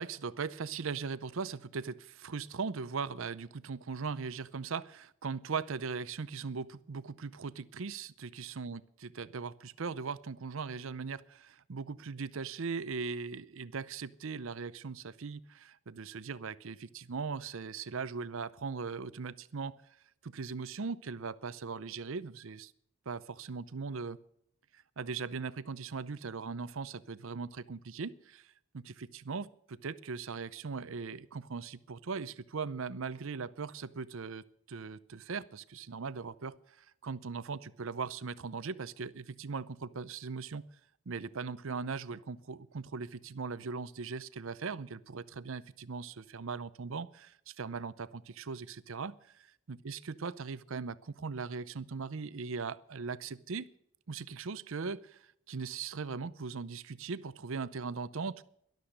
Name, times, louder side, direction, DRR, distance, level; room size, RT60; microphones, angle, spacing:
voice 1, 0.0-19.8 20.2-22.7 23.1-24.2 24.7-40.6 41.1-53.7 54.1-58.4, right 5 dB, 60° right, 17 dB, 0.6 m, -39 dB
13.0 x 12.0 x 6.5 m, 0.71 s
head